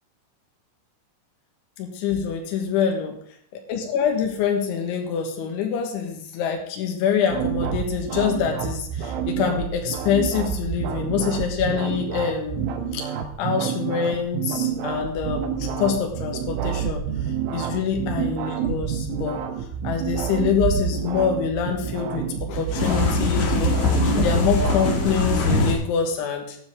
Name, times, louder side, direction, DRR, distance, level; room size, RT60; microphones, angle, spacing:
voice 1, 1.8-3.1 3.5-13.1 13.4-17.0 17.5-19.4 19.8-23.7 24.2-26.6, left 7 dB, 85° left, 3 dB, 4.0 m, -25 dB
sound 1, 7.3-25.6, right 8 dB, 90° right, 3.7 m, -28 dB
sound 2, 22.7-25.7, left 3 dB, 50° left, 2.8 m, -22 dB
15.0 x 10.5 x 3.6 m, 0.63 s
omnidirectional pair, 5.3 m